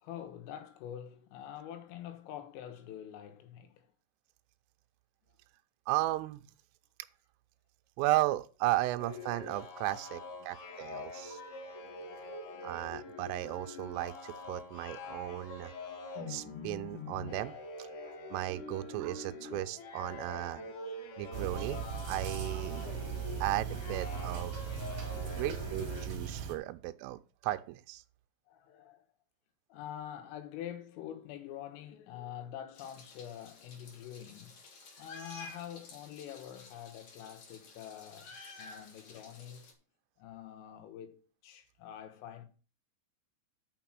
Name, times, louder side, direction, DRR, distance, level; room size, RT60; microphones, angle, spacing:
voice 1, 0.0-3.9 12.3-12.6 25.3-25.4 28.5-29.1 29.7-34.6 35.0-39.7 40.2-42.5, left 10 dB, 90° left, 3.9 m, -46 dB
voice 2, 5.9-6.4 8.0-11.4 12.6-15.7 16.3-20.6 21.2-21.8 22.1-22.9 23.4-24.6 25.3-28.0, right 17 dB, 85° right, 3.1 m, -35 dB
sound 1, 9.0-26.1, left 3 dB, 70° left, 1.9 m, -45 dB
sound 2, 21.3-26.5, right 7 dB, 45° right, 2.8 m, -38 dB
Meow, 32.8-39.7, left 3 dB, 55° left, 2.0 m, -52 dB
6.8 x 6.0 x 7.4 m
omnidirectional pair, 5.7 m